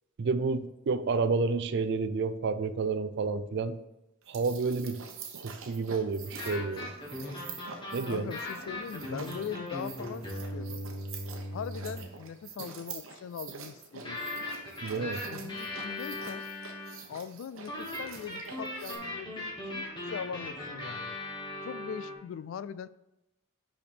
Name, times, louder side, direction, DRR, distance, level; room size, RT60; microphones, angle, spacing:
voice 1, 0.2-3.8 4.3-5.0 5.4-6.9 7.9-8.3 14.8-15.2, right 4 dB, 60° right, 12 dB, 0.4 m, -30 dB
sound 1, 4.2-19.0, right 6 dB, 75° right, 0.9 m, -46 dB
sound 2, 6.3-12.1 14.0-17.0 17.7-22.1, left 1 dB, 25° left, 1.5 m, -38 dB
voice 2, 8.1-10.8 11.5-14.2 14.9-16.4 17.1-21.2 21.6-22.9, left 7 dB, 70° left, 17 dB, 0.3 m, -41 dB
5.6 x 5.1 x 4.1 m, 0.93 s
head